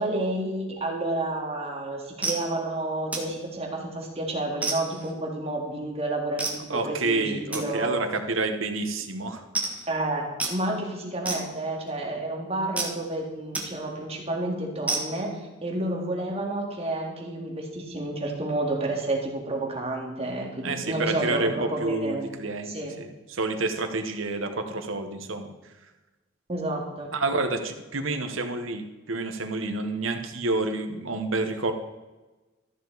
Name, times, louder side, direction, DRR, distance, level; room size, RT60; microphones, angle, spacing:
voice 1, 0.0-8.0 9.9-15.3 15.6-22.3 22.7-22.9 26.5-27.1, right 2 dB, 30° right, -1 dB, 2.1 m, -30 dB
sound 1, 1.6-1.8 2.2-2.5 3.1-3.4 3.8-4.1 4.6-5.1 6.4-6.6 7.5-7.6 8.3-8.5 8.8-8.9 9.1-9.2 9.5-9.9 10.4-10.6 11.3-11.9 12.8-12.9 13.5-13.7 14.1-14.2 14.9-15.2, right 3 dB, 5° right, 1.4 m, -30 dB
voice 2, 6.7-9.4 20.6-25.5 27.1-31.7, right 3 dB, 85° right, 7 dB, 1.2 m, -29 dB
13.5 x 6.9 x 4.0 m, 1.1 s
head